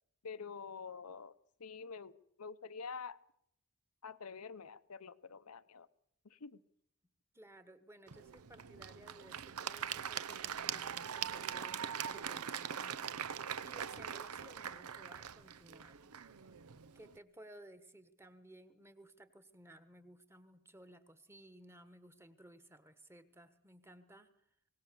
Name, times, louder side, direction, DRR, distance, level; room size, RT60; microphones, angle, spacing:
voice 1, 0.2-1.3 1.6-3.2 4.0-5.9 6.2-6.6, left 5 dB, 90° left, 12 dB, 0.9 m, -47 dB
voice 2, 7.3-16.5 16.9-24.3, right 1 dB, 10° right, 11 dB, 1.3 m, -58 dB
Applause / Crowd, 8.1-17.1, right 8 dB, 85° right, 0.8 m, -42 dB
24.5 x 19.0 x 6.9 m, 0.73 s
head